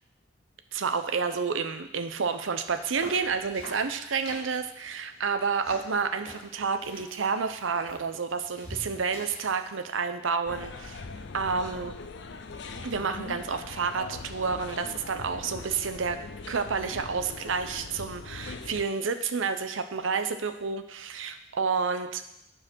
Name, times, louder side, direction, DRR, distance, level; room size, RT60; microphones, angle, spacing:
voice 1, 0.7-11.0 11.3-11.9 12.8-16.2 16.5-22.2, right 5 dB, 80° right, 9 dB, 0.7 m, -30 dB
sound 1, 2.7-9.7, left 1 dB, 30° left, 2.6 m, -47 dB
sound 2, 10.5-18.8, left 3 dB, 60° left, 0.6 m, -41 dB
8.8 x 4.8 x 6.1 m, 0.84 s
head